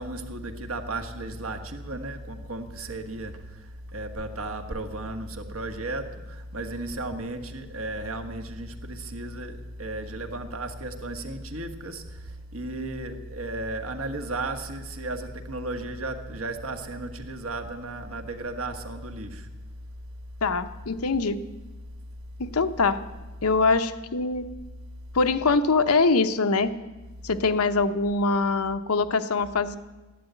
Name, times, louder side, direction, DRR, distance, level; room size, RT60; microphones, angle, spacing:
voice 1, 0.0-19.5, right 2 dB, 70° right, 1.6 m, -34 dB
voice 2, 20.4-21.4 22.4-23.0 23.4-24.5 25.1-26.7 27.2-29.8, left 3 dB, 85° left, 0.9 m, -23 dB
14.0 x 11.0 x 9.1 m
head